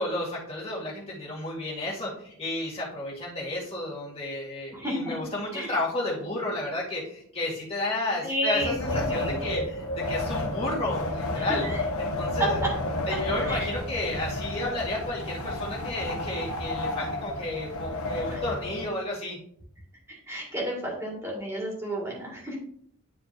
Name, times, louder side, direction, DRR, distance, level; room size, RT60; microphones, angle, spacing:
voice 1, 0.0-11.6 12.0-12.6 13.1-19.4, left 2 dB, 25° left, -5 dB, 2.0 m, -32 dB
voice 2, 4.7-5.1 5.5-5.8 8.2-9.3 11.4-11.8 13.1-13.2 13.5-13.7 18.3-18.4 20.3-22.6, equal, 10° right, -4 dB, 1.9 m, -32 dB
Wind, 8.5-18.9, left 1 dB, 85° left, 1.0 m, -31 dB
9.9 x 4.5 x 2.6 m, 0.65 s
head